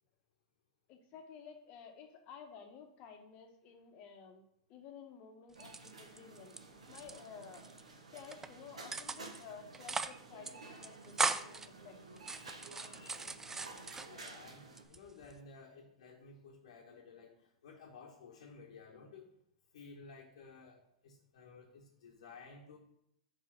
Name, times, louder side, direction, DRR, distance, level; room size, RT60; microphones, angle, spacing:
voice 1, 0.9-4.4 4.7-6.6 6.9-7.7 8.1-12.3 13.1-13.3, left 6 dB, 45° left, 4 dB, 1.3 m, -53 dB
sound 1, 5.5-6.6 6.9-7.8 8.2-8.5 8.9-9.4 9.7-10.2 10.4-10.5 10.8-11.7 12.2-14.3 14.8-15.4, right 4 dB, 10° right, 0.4 m, -38 dB
sound 2, 5.5-14.8, right 3 dB, 90° right, 1.2 m, -53 dB
voice 2, 12.3-13.3 14.0-19.3 19.7-22.8, left 4 dB, 70° left, -2 dB, 1.2 m, -55 dB
4.8 x 4.7 x 5.9 m, 0.75 s
hypercardioid pair, 110°, 3 cm